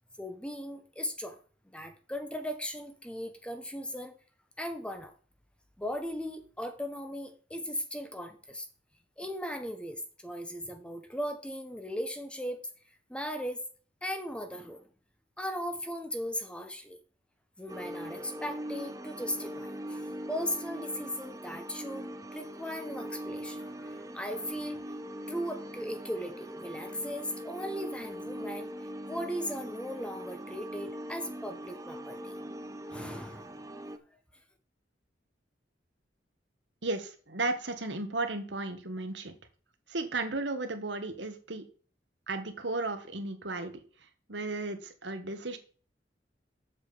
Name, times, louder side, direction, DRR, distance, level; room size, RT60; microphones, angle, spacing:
voice 1, 0.2-1.4 1.6-4.2 4.6-5.1 5.8-8.7 9.2-12.7 13.1-13.6 14.0-14.9 15.4-17.0 17.6-24.8 25.3-28.7 29.1-32.4 32.9-33.5, equal, 5° left, 7 dB, 1.1 m, -38 dB
sound 1, 17.7-34.0, equal, 20° right, 0.7 m, -41 dB
voice 2, 36.8-39.3 39.9-41.6 42.3-43.7 44.3-45.6, right 2 dB, 80° right, 7 dB, 1.6 m, -34 dB
7.5 x 7.4 x 5.0 m, 0.40 s
head